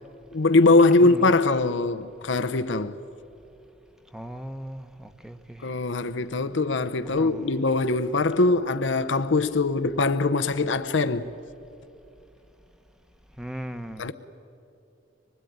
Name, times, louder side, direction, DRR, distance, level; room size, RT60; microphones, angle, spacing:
voice 1, 0.3-3.0 5.6-11.3 14.0-14.1, left 3 dB, 90° left, 0.8 m, -22 dB
voice 2, 1.0-1.4 4.1-5.7 7.2-7.6 13.4-14.1, equal, 5° right, 1.0 m, -38 dB
25.5 x 20.0 x 9.4 m
head